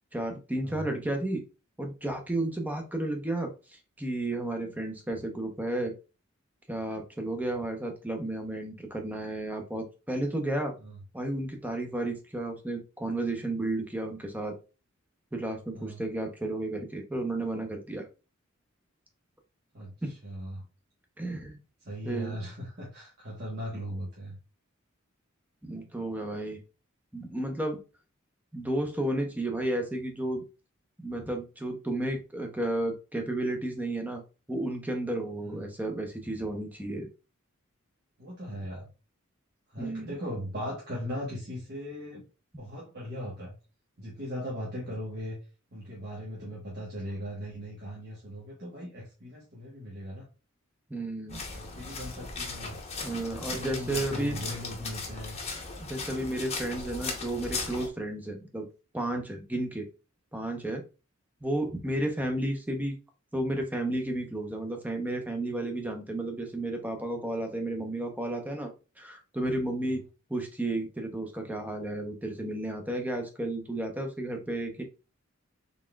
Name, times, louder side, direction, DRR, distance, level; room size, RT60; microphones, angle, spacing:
voice 1, 0.1-1.4 1.8-5.9 6.7-10.7 11.1-14.6 15.3-18.1 20.0-20.1 21.2-21.6 22.0-22.4 25.6-26.6 27.1-27.8 28.5-30.4 31.0-34.2 34.5-37.1 39.8-40.1 50.9-51.4 53.0-54.4 55.8-58.7 58.9-59.9 60.3-60.8 61.4-63.0 63.3-68.7 69.0-70.0 70.3-74.8, right 1 dB, 10° right, 4 dB, 0.7 m, -32 dB
voice 2, 0.6-0.9 10.8-11.0 15.7-16.0 19.7-20.6 21.8-24.4 35.4-35.7 38.2-38.9 39.7-42.2 42.6-43.5 44.0-45.4 45.7-50.3 51.5-52.8 53.3-55.4, equal, 50° right, -5 dB, 1.1 m, -39 dB
sound 1, 51.3-57.9, left 4 dB, 30° left, 0.8 m, -37 dB
4.0 x 3.6 x 2.2 m, 0.31 s
head